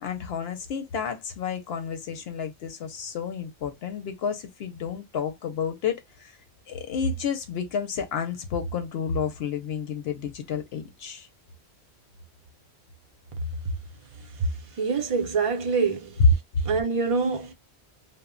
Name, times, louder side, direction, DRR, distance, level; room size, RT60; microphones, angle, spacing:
voice 1, 0.0-6.3 6.7-11.3, left 6 dB, 70° left, 0.8 m, -31 dB
voice 2, 14.3-16.2 16.6-17.5, right 4 dB, 40° right, 0.6 m, -26 dB
2.1 x 2.0 x 3.5 m
omnidirectional pair, 1.1 m